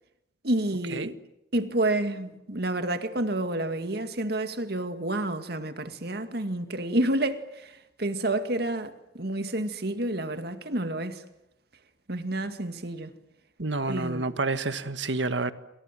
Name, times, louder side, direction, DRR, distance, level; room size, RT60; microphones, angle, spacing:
voice 1, 0.4-1.2 1.5-11.2 12.1-13.1 13.8-14.3, right 1 dB, 55° right, 2.1 m, -29 dB
voice 2, 13.6-15.5, right 3 dB, 70° right, 1.5 m, -29 dB
28.0 x 27.5 x 7.6 m
head